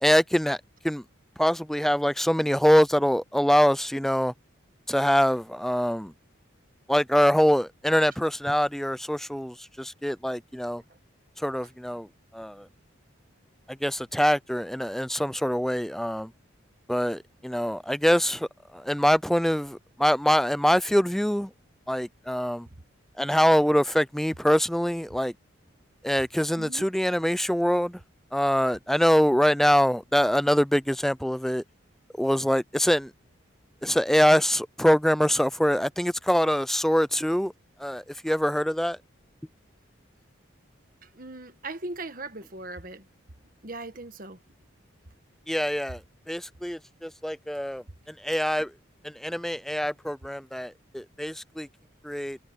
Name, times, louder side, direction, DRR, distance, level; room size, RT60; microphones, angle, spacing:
voice 1, 0.0-0.6 0.8-1.0 1.4-4.3 4.9-6.1 6.9-10.8 11.4-12.7 13.7-16.3 16.9-21.5 21.9-22.7 23.2-25.3 26.0-28.0 28.3-31.6 32.2-33.1 33.8-37.5 37.8-39.0 45.5-48.7 49.0-51.7 52.0-52.4, equal, ahead, 0.4 m, -24 dB
voice 2, 26.5-26.8 41.0-43.1 43.6-44.4, right 2 dB, 45° right, 1.5 m, -39 dB
head